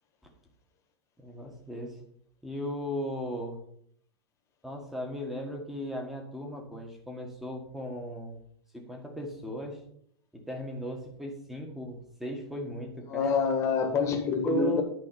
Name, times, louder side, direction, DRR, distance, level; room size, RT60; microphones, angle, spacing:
voice 1, 1.2-2.0 2.4-3.6 4.6-8.4 8.7-9.8 10.5-13.3 14.4-14.8, left 1 dB, ahead, 2 dB, 1.6 m, -36 dB
voice 2, 13.1-14.8, left 5 dB, 20° left, 4 dB, 1.6 m, -26 dB
11.0 x 4.9 x 6.9 m, 0.67 s
supercardioid pair, 165°, 14 cm